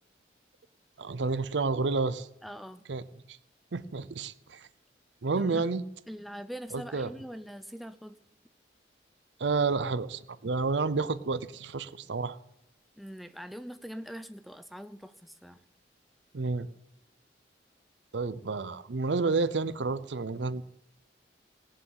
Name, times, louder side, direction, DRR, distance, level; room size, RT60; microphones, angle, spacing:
voice 1, 1.0-2.3 2.9-3.0 3.7-4.7 5.2-5.8 6.7-7.1 9.4-12.4 16.3-16.7 18.1-20.6, right 4 dB, 75° right, 17 dB, 0.6 m, -30 dB
voice 2, 2.4-2.8 5.4-5.6 6.1-8.2 13.0-15.6, equal, ahead, 10 dB, 0.5 m, -43 dB
17.5 x 7.6 x 8.7 m, 0.84 s
head